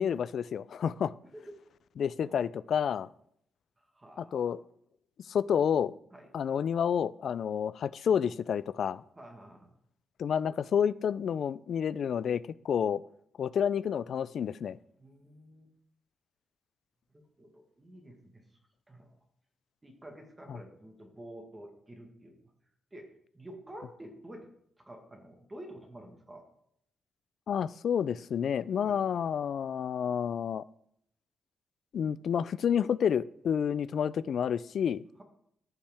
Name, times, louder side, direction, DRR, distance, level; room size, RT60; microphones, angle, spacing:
voice 1, 0.0-1.1 2.0-3.1 4.2-4.6 5.3-5.9 6.3-9.0 10.2-13.0 13.4-14.8 20.5-20.6 27.5-30.6 31.9-35.0, left 8 dB, 55° left, 0.3 m, -29 dB
voice 2, 3.8-4.5 6.1-6.3 9.1-9.7 15.0-15.7 17.1-18.4 18.9-19.2 19.8-22.5 22.9-24.5 24.8-26.4 28.8-29.0, right 1 dB, 15° right, 1.5 m, -49 dB
14.5 x 5.6 x 3.5 m
wide cardioid pair, 165°, 0 cm